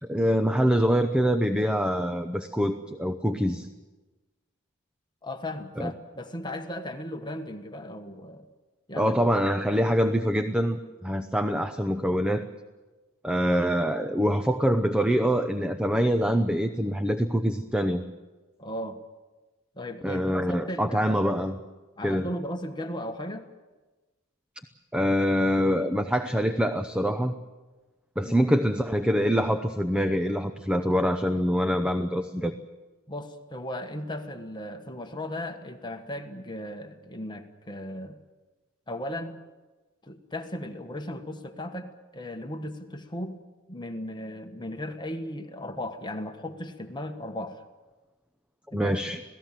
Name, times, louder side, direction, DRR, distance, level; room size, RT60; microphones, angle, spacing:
voice 1, 0.0-3.7 5.8-5.9 9.0-12.4 13.2-18.0 20.0-21.6 22.0-22.3 24.9-27.3 28.2-32.5 48.7-49.2, equal, 5° right, 8 dB, 0.8 m, -25 dB
voice 2, 5.2-8.5 8.9-9.2 18.6-19.0 19.7-21.0 22.0-23.5 28.2-28.5 33.1-38.2 38.9-39.4 40.0-43.4 43.7-47.6 48.7-49.0, left 1 dB, 20° left, 6 dB, 1.4 m, -36 dB
27.5 x 18.0 x 7.5 m, 1.2 s
head